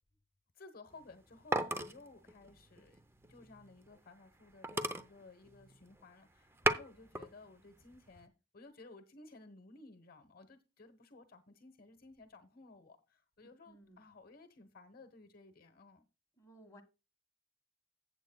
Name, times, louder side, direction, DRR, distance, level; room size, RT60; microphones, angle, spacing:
voice 1, 0.5-3.0 3.3-16.0, left 3 dB, 50° left, 1.1 m, -57 dB
sound 1, 0.9-4.0 4.3-4.4 4.6-6.0 6.4-7.3 7.7-8.2, right 2 dB, 15° right, 0.6 m, -37 dB
voice 2, 13.7-14.0 16.4-16.8, right 1 dB, 15° left, 1.5 m, -58 dB
14.5 x 8.1 x 2.3 m
head